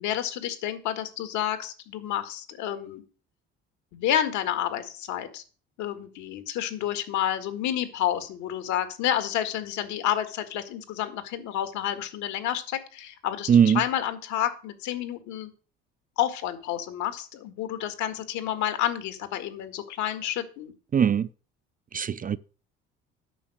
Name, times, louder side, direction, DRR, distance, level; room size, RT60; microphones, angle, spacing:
voice 1, 0.0-3.0 3.9-5.4 5.8-13.5 13.7-15.5 16.2-20.7, left 11 dB, 70° left, 1.8 m, -29 dB
voice 2, 13.5-13.8 20.9-21.3 21.9-22.4, right 8 dB, 30° right, 0.5 m, -20 dB
9.1 x 6.2 x 6.4 m
hypercardioid pair, 70°, 30 cm